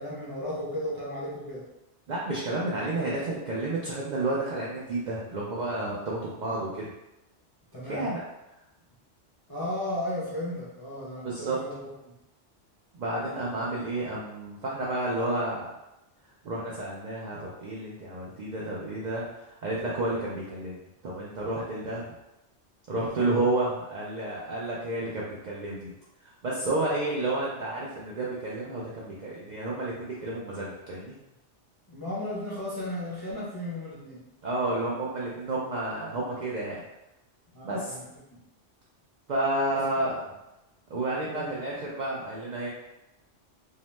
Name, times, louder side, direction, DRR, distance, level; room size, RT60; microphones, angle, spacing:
voice 1, 0.0-1.6 7.7-8.1 9.5-12.1 23.0-23.4 31.9-34.2 37.5-38.0 38.3-38.4 39.7-39.8 41.3-41.6, left 1 dB, 30° left, -8 dB, 0.5 m, -35 dB
voice 2, 2.1-6.9 7.9-8.2 11.2-11.6 12.9-15.7 16.4-22.1 22.9-25.9 26.4-31.2 34.4-36.8 37.6-38.0 39.3-40.1 40.9-42.7, right 2 dB, 60° right, -5 dB, 0.4 m, -31 dB
2.7 x 2.0 x 3.0 m, 0.92 s
omnidirectional pair, 1.2 m